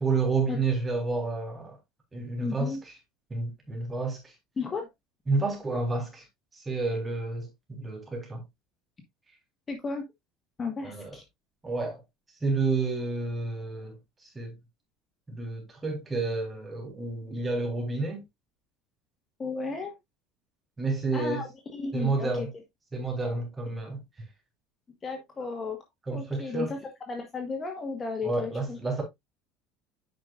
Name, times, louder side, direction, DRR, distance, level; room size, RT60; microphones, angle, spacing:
voice 1, 0.0-1.8 2.1-2.8 3.3-4.3 5.3-6.2 6.5-8.4 10.8-11.2 11.6-12.0 12.4-14.0 14.2-14.5 15.3-18.2 20.8-21.4 21.9-22.5 22.9-24.0 26.1-26.8 28.2-29.0, right 3 dB, 15° right, 3.7 m, -30 dB
voice 2, 2.4-2.8 4.6-4.9 9.7-10.0 10.6-11.2 19.4-19.9 21.1-22.5 25.0-25.8 26.1-26.8 27.1-28.8, left 4 dB, 25° left, 1.5 m, -34 dB
8.9 x 5.8 x 2.5 m
cardioid pair, 130°, 0 cm